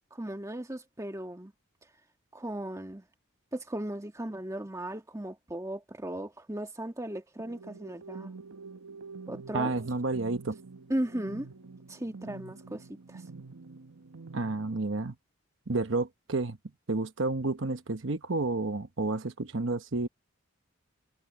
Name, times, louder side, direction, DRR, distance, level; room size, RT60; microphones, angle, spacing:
voice 1, 0.1-1.5 2.3-3.1 3.5-8.3 9.3-9.7 10.9-11.5 11.9-13.2, right 1 dB, 15° right, 1.5 m, -36 dB
sound 1, 7.4-14.8, right 4 dB, 85° right, 1.1 m, -47 dB
voice 2, 9.5-10.6 14.3-15.1 15.7-16.6 16.9-20.1, right 3 dB, 60° right, 1.0 m, -30 dB
head